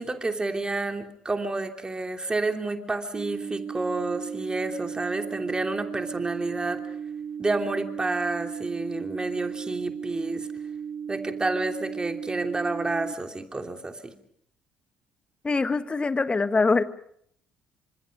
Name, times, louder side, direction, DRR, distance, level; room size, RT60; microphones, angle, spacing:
voice 1, 0.0-6.8 7.4-10.5 11.1-14.1, right 2 dB, 20° right, 6 dB, 3.0 m, -29 dB
sound 1, 3.1-13.1, right 7 dB, 55° right, 1.8 m, -36 dB
voice 2, 15.4-16.8, left 3 dB, 25° left, 12 dB, 1.6 m, -23 dB
28.0 x 26.0 x 5.3 m, 0.66 s
hypercardioid pair, 50°, 4 cm